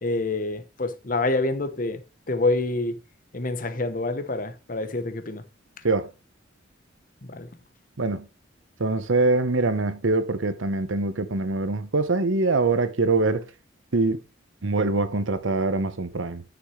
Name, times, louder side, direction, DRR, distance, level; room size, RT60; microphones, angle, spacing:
voice 1, 0.0-2.0 2.3-2.9 3.3-5.4 7.2-7.5, left 2 dB, 45° left, 0.9 m, -27 dB
voice 2, 8.8-13.4 13.9-14.2 14.6-16.4, right 3 dB, 85° right, 0.9 m, -23 dB
9.8 x 6.0 x 3.2 m
head